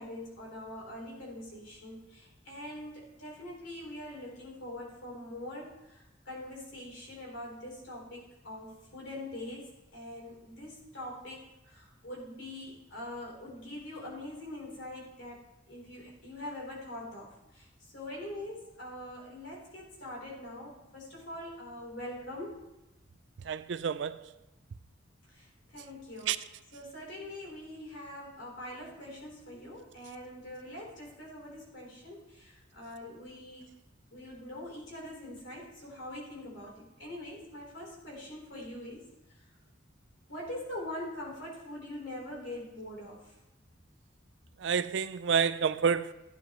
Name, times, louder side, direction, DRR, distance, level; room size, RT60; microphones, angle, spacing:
voice 1, 0.0-15.4 15.7-22.6 25.3-33.8 34.1-39.1 39.3-39.4 40.3-43.4, left 1 dB, 70° left, 3.8 m, -43 dB
voice 2, 23.5-24.2 26.3-26.4 44.6-46.1, right 6 dB, 65° right, 0.4 m, -28 dB
15.5 x 9.6 x 3.1 m
head